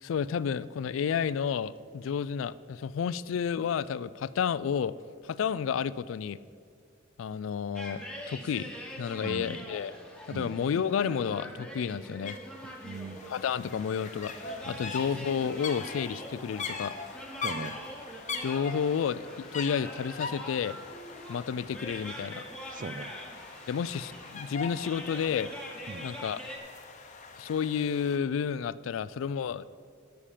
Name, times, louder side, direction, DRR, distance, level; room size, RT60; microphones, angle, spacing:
voice 1, 0.0-4.9 5.2-6.4 7.2-8.7 9.0-9.9 10.3-12.4 13.3-16.9 18.4-20.8 21.3-22.4 23.7-25.5 26.0-26.4 27.4-29.7, left 7 dB, 75° left, 17 dB, 0.3 m, -31 dB
sound 1, 7.7-26.6, equal, 5° left, 1.3 m, -44 dB
voice 2, 9.2-9.6 10.3-10.5 12.8-13.2 14.8-14.9 17.4-17.7 22.7-23.1 25.9-26.0, right 3 dB, 45° right, 13 dB, 0.4 m, -39 dB
sound 2, 12.2-12.4 12.6-28.2, left 5 dB, 40° left, 0.8 m, -42 dB
12.5 x 7.0 x 5.0 m, 2.3 s
head